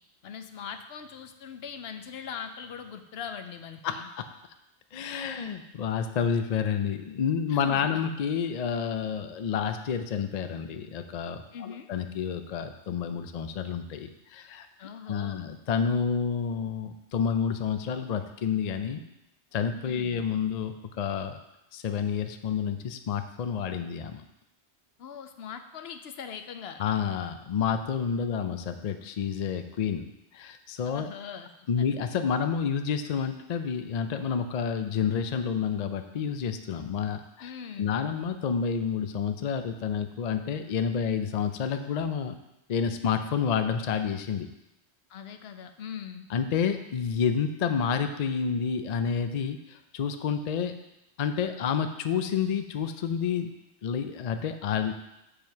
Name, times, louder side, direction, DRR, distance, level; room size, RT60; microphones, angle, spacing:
voice 1, 0.2-4.1 7.5-8.1 11.5-11.9 14.8-15.5 19.8-20.2 25.0-26.8 28.2-28.3 30.8-31.9 37.4-38.0 45.1-46.3, left 7 dB, 70° left, 7 dB, 0.8 m, -41 dB
voice 2, 3.8-4.2 4.9-14.7 15.1-19.0 19.5-21.4 21.7-24.2 26.8-31.1 31.7-37.5 37.8-42.3 42.7-44.5 46.3-50.7 51.2-53.5 53.8-54.9, left 7 dB, 55° left, 8 dB, 0.5 m, -29 dB
7.3 x 5.1 x 4.6 m, 0.89 s
omnidirectional pair, 1.1 m